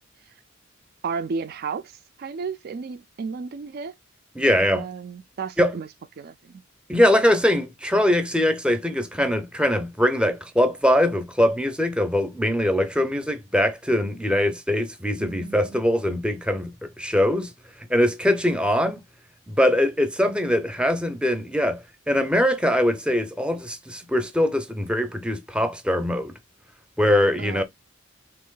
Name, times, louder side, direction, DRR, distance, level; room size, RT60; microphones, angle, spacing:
voice 1, 1.0-1.8 2.2-3.9 4.7-5.9 6.2-6.6 15.2-15.8 27.4-27.6, right 5 dB, 50° right, 0.4 m, -33 dB
voice 2, 4.4-4.9 5.6-5.7 6.9-17.5 17.9-19.0 19.5-26.3 27.0-27.6, left 1 dB, 5° right, 0.6 m, -22 dB
3.3 x 3.0 x 3.7 m
head